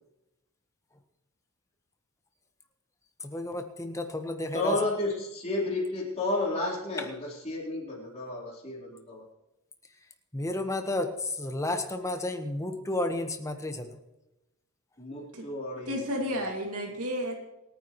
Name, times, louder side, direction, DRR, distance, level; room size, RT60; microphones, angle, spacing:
voice 1, 3.2-4.8 10.3-13.9, left 2 dB, 15° left, 6 dB, 1.3 m, -32 dB
voice 2, 4.5-9.2 15.0-16.0 16.3-16.4, left 2 dB, 30° left, -5 dB, 4.2 m, -32 dB
voice 3, 15.9-17.4, equal, 90° right, 0 dB, 2.6 m, -32 dB
27.5 x 9.7 x 3.2 m, 0.95 s
head